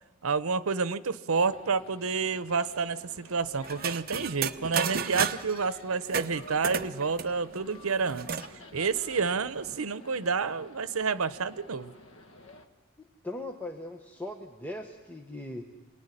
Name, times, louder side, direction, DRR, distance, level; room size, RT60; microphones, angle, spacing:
voice 1, 0.2-8.3 8.7-11.9, right 5 dB, 90° right, 15 dB, 0.8 m, -29 dB
sound 1, 1.4-12.7, left 1 dB, 75° left, 1.7 m, -51 dB
sound 2, 3.6-5.6 6.1-8.5 8.9-9.0 9.2-9.8, right 6 dB, 45° right, 0.9 m, -33 dB
voice 2, 13.0-15.6, left 1 dB, 10° left, 3 dB, 1.2 m, -39 dB
28.0 x 19.5 x 10.0 m, 1.3 s
head